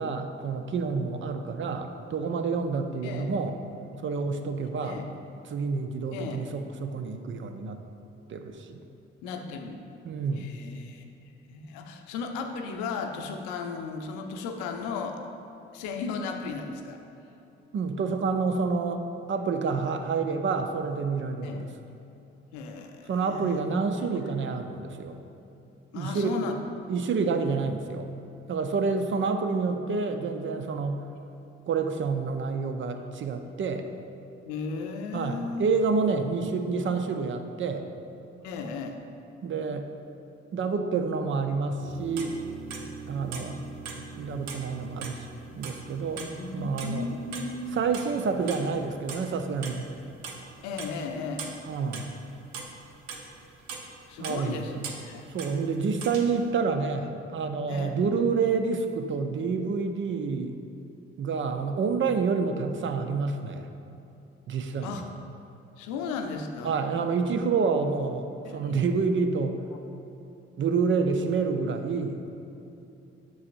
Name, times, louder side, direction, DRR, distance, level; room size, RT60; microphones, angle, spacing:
voice 1, 0.0-3.6 4.0-5.0 5.5-7.8 8.3-8.8 10.0-10.5 17.7-21.7 23.1-25.2 25.9-26.4 26.9-28.1 28.5-31.0 31.7-33.9 35.1-37.9 39.4-39.9 40.5-42.4 43.1-43.6 44.2-45.3 45.6-46.2 46.5-47.1 47.7-49.9 51.7-52.1 54.2-54.9 55.3-60.6 61.2-63.7 64.5-65.1 66.6-69.6 70.6-72.2, right 4 dB, 40° right, 7 dB, 0.6 m, -28 dB
voice 2, 4.6-5.1 6.1-6.4 9.2-9.8 10.3-11.0 11.5-15.2 15.7-17.0 21.4-21.6 22.5-23.6 25.9-26.5 34.4-35.7 38.4-39.0 46.2-47.9 50.6-51.5 54.1-55.2 57.7-57.9 64.8-65.0 65.8-66.7 68.4-68.7, left 4 dB, 65° left, 4 dB, 0.7 m, -35 dB
sound 1, 41.8-55.6 55.9-56.4, right 4 dB, 65° right, 0.8 m, -41 dB
9.5 x 6.2 x 2.6 m, 2.8 s
figure-of-eight pair, 45°, 32 cm